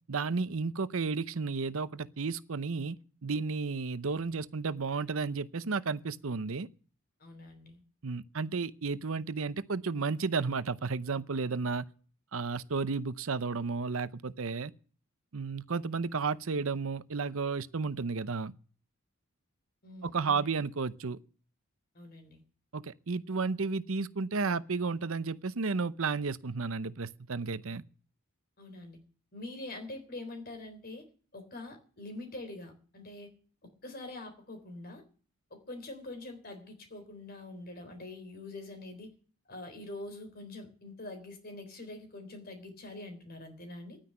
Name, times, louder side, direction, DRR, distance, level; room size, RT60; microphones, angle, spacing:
voice 1, 0.1-6.7 8.0-11.9 12.3-14.7 15.3-18.5 20.0-21.2 22.7-27.8, right 4 dB, 70° right, 0.7 m, -33 dB
voice 2, 7.2-7.8 19.8-20.5 21.9-22.4 28.6-29.0 29.3-31.1 31.3-33.3 33.8-35.0 35.5-39.1 39.5-44.0, left 2 dB, 45° left, 3.7 m, -44 dB
11.5 x 9.8 x 9.9 m
head